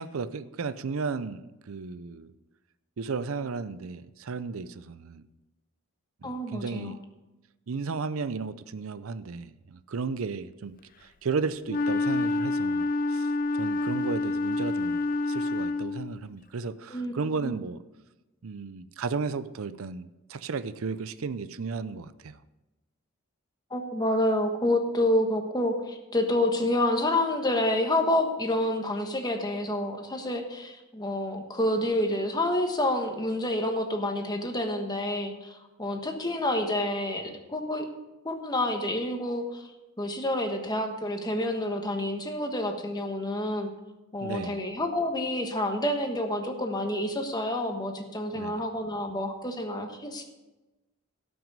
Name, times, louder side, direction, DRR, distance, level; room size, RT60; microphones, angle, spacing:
voice 1, 0.0-2.3 3.0-5.2 6.2-7.0 7.7-10.7 11.0-17.8 18.4-22.4 44.2-44.6 48.3-48.7, right 4 dB, 80° right, 14 dB, 0.5 m, -34 dB
voice 2, 6.2-6.9 16.9-17.1 17.4-17.6 23.7-37.9 38.2-39.7 40.0-43.7 44.1-50.2, left 1 dB, 20° left, 4 dB, 1.3 m, -28 dB
Wind instrument woodwind instrument, 11.7-16.2, left 2 dB, 40° left, 0.5 m, -28 dB
17.0 x 6.1 x 5.4 m, 1.1 s
head